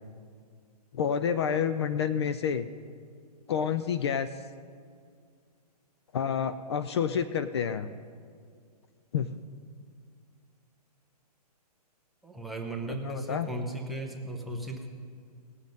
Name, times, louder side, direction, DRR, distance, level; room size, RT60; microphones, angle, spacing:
voice 1, 0.9-2.7 3.5-4.3 6.1-7.9 9.1-9.4 13.0-13.5, left 7 dB, 40° left, 12 dB, 0.4 m, -29 dB
voice 2, 12.2-14.9, right 1 dB, ahead, 3 dB, 0.6 m, -36 dB
18.0 x 7.4 x 5.3 m, 2.1 s
hypercardioid pair, 160°, 21 cm